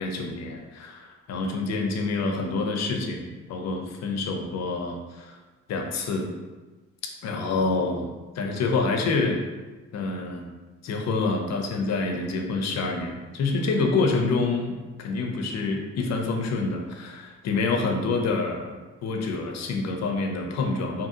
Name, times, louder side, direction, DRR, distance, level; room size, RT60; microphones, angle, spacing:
voice 1, 0.0-5.4 5.7-6.3 7.2-8.1 8.3-9.4 9.9-10.4 10.8-21.1, left 3 dB, 60° left, 3 dB, 0.5 m, -27 dB
2.7 x 2.6 x 2.5 m, 1.2 s
cardioid pair, 90°, 30 cm